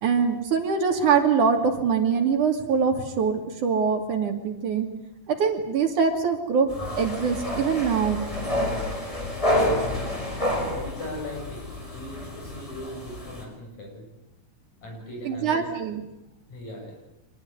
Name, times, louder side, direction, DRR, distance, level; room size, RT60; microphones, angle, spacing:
voice 1, 0.0-4.9 5.3-6.7 7.0-8.2 15.3-16.0, right 6 dB, 65° right, 5 dB, 4.1 m, -23 dB
sound 1, 6.7-13.4, left 1 dB, 10° left, 5.9 m, -29 dB
voice 2, 9.4-10.0 10.5-14.1 14.8-15.7 16.5-17.0, left 1 dB, 55° left, 2 dB, 9.0 m, -39 dB
26.0 x 20.5 x 9.7 m, 0.88 s
omnidirectional pair, 3.9 m